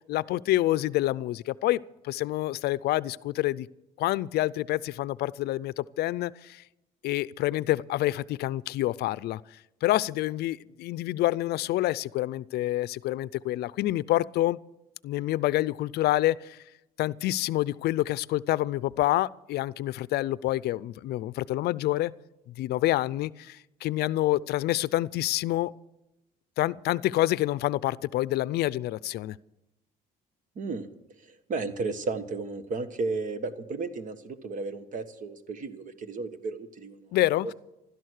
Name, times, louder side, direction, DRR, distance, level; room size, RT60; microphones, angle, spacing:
voice 1, 0.1-3.7 4.0-6.6 7.0-9.4 9.8-14.6 15.0-16.6 17.0-22.1 22.6-25.7 26.6-29.4 37.1-37.5, left 16 dB, 70° left, 20 dB, 0.5 m, -27 dB
voice 2, 30.5-30.9 31.2-37.2, right 3 dB, 50° right, 11 dB, 1.5 m, -34 dB
15.5 x 12.5 x 6.5 m, 0.92 s
cardioid pair, 110°, 17 cm